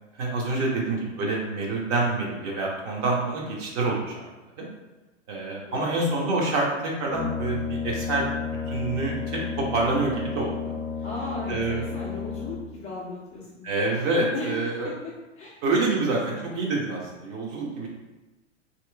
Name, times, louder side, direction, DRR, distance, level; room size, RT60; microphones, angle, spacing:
voice 1, 0.2-4.3 4.6-4.7 5.3-8.3 8.7-10.7 11.5-11.9 13.6-14.9 15.6-17.9, right 3 dB, 30° right, -2 dB, 0.8 m, -27 dB
voice 2, 5.7-6.0 11.0-13.7 14.1-14.5 14.8-15.6 15.9-16.4, left 2 dB, 20° left, -5 dB, 0.5 m, -37 dB
Brass instrument, 7.0-12.8, left 6 dB, 75° left, 0.6 m, -32 dB
3.0 x 3.0 x 3.3 m, 1.1 s
figure-of-eight pair, 100°, 37 cm